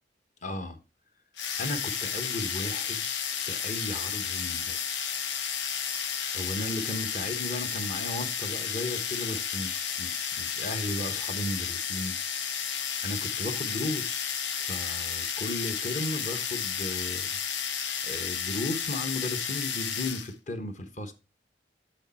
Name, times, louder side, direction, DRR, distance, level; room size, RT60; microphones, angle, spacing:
voice 1, 0.4-0.8 1.6-3.0 3.3-4.9 6.3-12.2 13.0-14.4 14.7-17.3 18.0-21.1, left 1 dB, 40° left, 0.9 m, -35 dB
sound 1, 1.4-20.3, left 7 dB, 70° left, 0.8 m, -32 dB
6.4 x 6.3 x 4.1 m
head